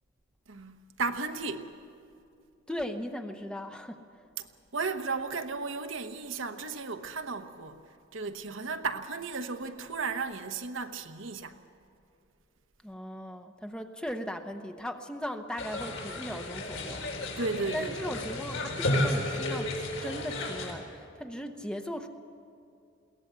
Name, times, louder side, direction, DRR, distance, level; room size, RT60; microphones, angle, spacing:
voice 1, 0.5-1.7 4.4-4.5 4.7-7.8 8.1-11.6 17.4-18.0, right 4 dB, 75° right, 1.1 m, -34 dB
voice 2, 2.7-4.0 12.8-17.0 17.3-17.4 17.7-19.7 20.0-22.1, equal, 5° left, 0.8 m, -38 dB
sound 1, 15.6-20.7, left 1 dB, 75° left, 4.2 m, -32 dB
22.0 x 17.5 x 8.1 m
head